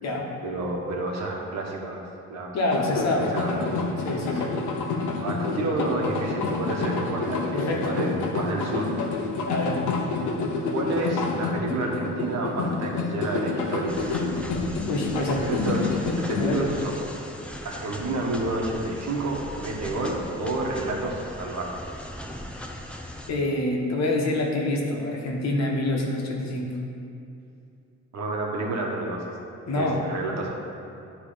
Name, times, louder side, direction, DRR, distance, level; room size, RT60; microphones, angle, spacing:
voice 1, 0.4-3.6 4.0-4.5 5.2-8.9 10.7-14.0 15.2-17.2 17.6-21.8 28.1-29.3 29.7-30.5, right 2 dB, 60° right, -1 dB, 1.3 m, -30 dB
voice 2, 2.5-3.3 4.0-4.5 7.5-8.0 9.4-9.8 14.9-15.4 16.3-16.6 23.3-26.7 29.7-30.0, left 2 dB, 60° left, -1 dB, 1.3 m, -26 dB
sound 1, 2.7-16.5, left 4 dB, 80° left, 0.9 m, -28 dB
sound 2, 13.9-23.3, left 1 dB, 5° left, 0.7 m, -39 dB
9.9 x 3.4 x 5.1 m, 2.6 s
cardioid pair, 90°, 30 cm